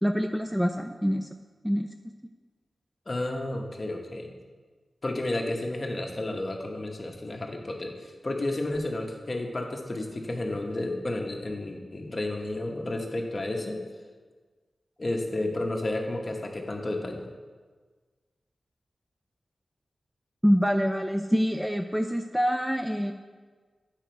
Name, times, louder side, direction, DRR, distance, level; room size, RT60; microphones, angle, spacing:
voice 1, 0.0-1.3 1.6-1.9 20.4-23.1, equal, 5° right, 5 dB, 0.3 m, -25 dB
voice 2, 3.1-4.4 5.0-13.8 15.0-17.2, left 2 dB, 40° left, 1 dB, 1.1 m, -31 dB
8.9 x 5.0 x 4.5 m, 1.5 s
wide cardioid pair, 75°, 0 cm